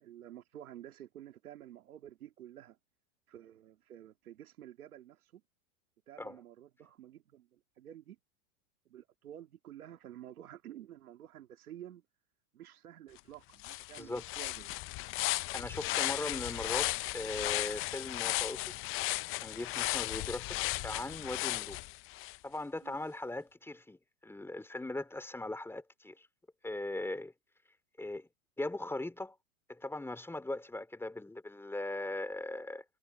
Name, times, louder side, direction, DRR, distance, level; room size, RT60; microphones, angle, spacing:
voice 1, 0.0-2.8 3.3-5.4 6.1-8.2 8.9-12.0 12.5-14.7 15.3-15.4 22.8-23.0, right 11 dB, 85° right, 2.5 m, -51 dB
sound 1, 13.2-13.3 13.6-22.4, left 20 dB, 30° left, 0.6 m, -35 dB
voice 2, 15.5-18.6 18.9-20.6 20.8-21.8 22.4-24.0 24.2-26.3 26.6-27.3 28.0-28.3 28.6-29.3 29.7-32.8, left 2 dB, 5° left, 3.0 m, -39 dB
hypercardioid pair, 120°, 42 cm